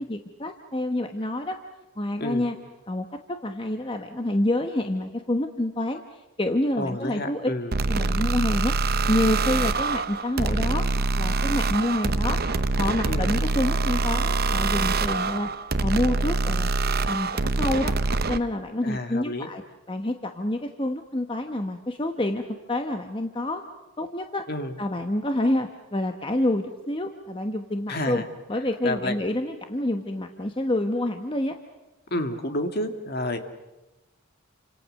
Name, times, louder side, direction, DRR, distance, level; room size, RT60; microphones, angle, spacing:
voice 1, 0.0-1.6 2.0-2.5 2.9-7.5 7.9-8.7 9.1-12.4 12.8-15.5 15.8-16.7 17.1-17.3 17.6-17.9 18.3-19.6 19.9-22.4 22.7-23.6 24.0-24.4 24.8-28.2 28.5-31.5, left 1 dB, 25° left, 5 dB, 1.1 m, -27 dB
voice 2, 6.8-7.7 13.0-13.3 18.8-19.5 24.5-24.7 27.9-28.2 28.8-29.2 32.1-33.4, left 1 dB, 45° left, 6 dB, 2.1 m, -29 dB
sound 1, 7.7-18.4, right 3 dB, 45° right, 0.9 m, -25 dB
29.0 x 26.0 x 6.5 m, 1.0 s
head